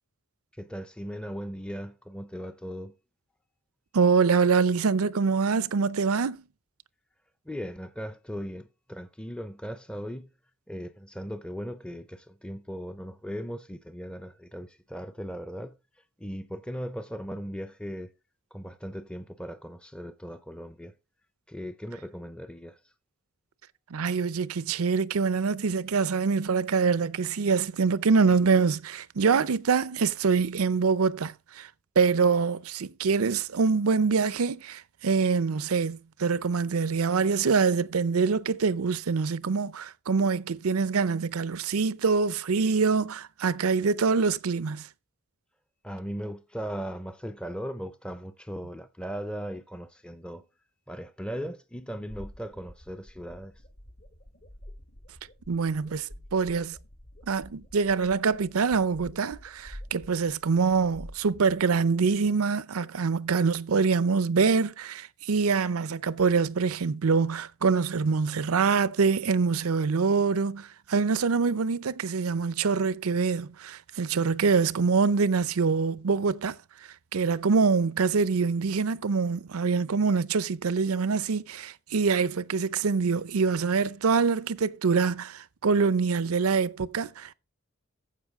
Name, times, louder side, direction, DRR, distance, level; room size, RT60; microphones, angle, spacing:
voice 1, 0.5-2.9 7.5-10.3 10.7-15.8 16.2-18.1 18.5-20.9 21.5-22.8 45.8-50.4 50.9-53.5, equal, 5° left, 0.5 m, -38 dB
voice 2, 3.9-6.4 23.9-31.7 32.0-44.9 55.5-56.8 57.3-76.6 77.1-87.3, right 5 dB, 85° right, 0.6 m, -25 dB
sound 1, 52.1-62.3, equal, 50° left, 1.3 m, -48 dB
15.0 x 5.5 x 3.5 m
head